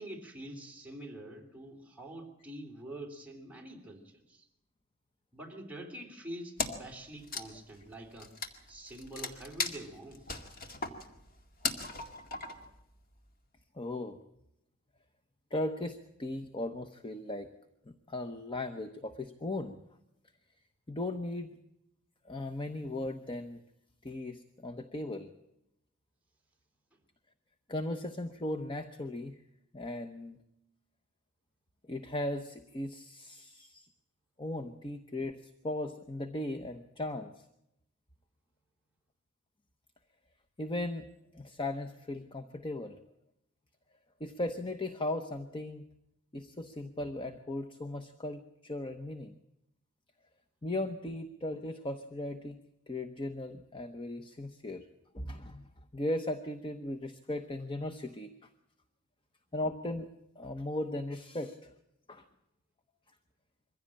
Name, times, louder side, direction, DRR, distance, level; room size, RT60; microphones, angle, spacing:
voice 1, 0.0-4.4 5.3-8.3 8.7-10.2, right 1 dB, 10° right, 0 dB, 3.4 m, -46 dB
Wood, 6.6-6.9 7.2-12.8, left 3 dB, 50° left, 2.1 m, -38 dB
voice 2, 13.7-14.2 15.5-17.5 17.9-19.8 20.9-21.5 22.2-23.6 24.0-25.3 27.7-29.4 29.7-30.4 31.9-33.9 34.4-37.5 40.6-41.1 41.3-43.0 44.2-45.8 46.3-49.3 50.6-52.6 52.9-54.9 55.1-55.6 55.9-58.5 59.5-60.1 60.4-61.7 62.1-62.3, left 1 dB, 25° left, 8 dB, 0.9 m, -37 dB
23.5 x 15.5 x 8.6 m, 0.85 s
head